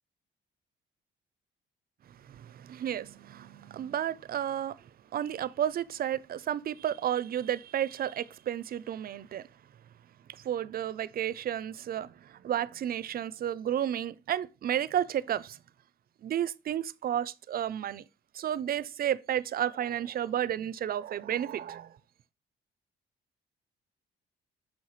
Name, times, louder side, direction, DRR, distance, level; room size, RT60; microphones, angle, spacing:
voice 1, 2.3-4.8 5.1-9.5 10.3-15.6 16.2-18.0 18.3-21.9, right 10 dB, 50° right, 0.4 m, -32 dB
6.4 x 5.6 x 3.1 m
cardioid pair, 90°, 20 cm